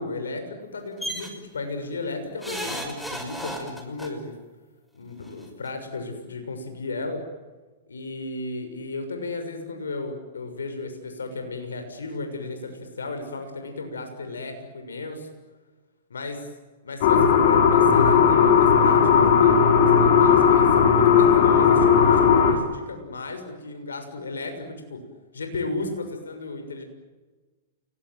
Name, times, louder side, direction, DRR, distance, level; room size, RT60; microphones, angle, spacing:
voice 1, 0.0-4.3 4.9-7.2 7.9-15.3 16.1-16.4 16.8-22.2 22.5-25.0 25.3-26.8, left 3 dB, 85° left, 5 dB, 6.5 m, -34 dB
sound 1, 1.0-1.3 2.4-4.1 5.3-5.4 5.7-5.8, equal, ahead, 6.1 m, -33 dB
sound 2, 17.0-22.5, left 7 dB, 60° left, 5.4 m, -16 dB
30.0 x 21.0 x 9.5 m, 1.3 s
hypercardioid pair, 115°, 0 cm